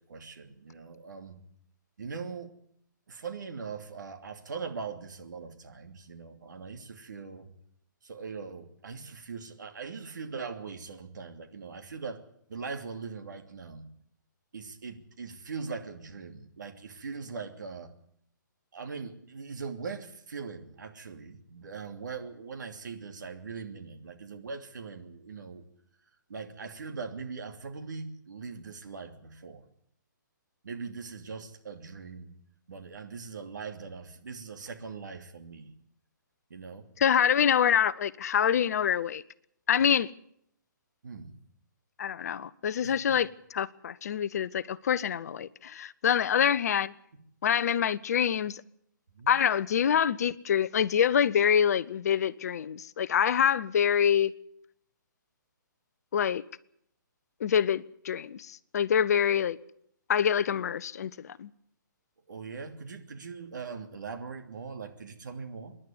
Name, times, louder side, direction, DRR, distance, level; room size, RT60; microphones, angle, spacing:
voice 1, 0.1-1.4 2.0-2.5 3.1-7.5 8.0-12.2 12.5-13.9 14.5-17.9 18.7-25.6 26.3-29.6 30.6-32.3 32.7-35.7 36.5-36.9 41.0-41.4 42.8-43.0 49.1-49.3 62.3-65.8, right 5 dB, 65° right, 2.9 m, -41 dB
voice 2, 37.0-39.2 39.7-40.1 42.0-46.9 47.4-48.6 49.3-54.3 56.1-56.4 57.4-58.5 58.7-59.6 60.1-61.1 61.4-61.5, left 8 dB, 50° left, 0.8 m, -26 dB
26.0 x 11.0 x 9.7 m
figure-of-eight pair, 135°, 11 cm